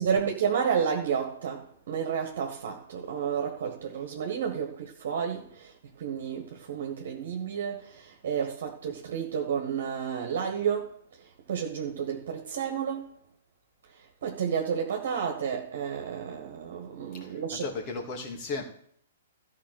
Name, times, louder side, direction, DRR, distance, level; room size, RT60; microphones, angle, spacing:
voice 1, 0.0-11.0 11.5-13.1 14.2-17.7, right 7 dB, 55° right, 1.6 m, -31 dB
voice 2, 17.2-18.6, left 4 dB, 35° left, 2.7 m, -35 dB
14.0 x 4.8 x 6.4 m
figure-of-eight pair, 120°, 0 cm